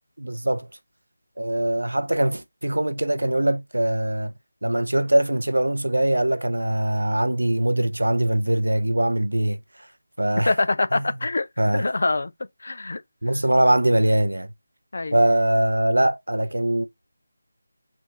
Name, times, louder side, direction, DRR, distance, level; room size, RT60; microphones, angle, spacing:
voice 1, 0.2-0.7 1.4-4.3 4.6-9.6 10.2-10.5 10.9-11.0 11.6-11.8 13.2-14.5 15.1-16.8, right 1 dB, 80° right, 0.5 m, -22 dB
voice 2, 10.5-11.5 11.7-12.3 12.6-13.0 14.9-15.2, left 2 dB, 55° left, 0.4 m, -24 dB
3.5 x 2.5 x 2.9 m
figure-of-eight pair, 160°, 0 cm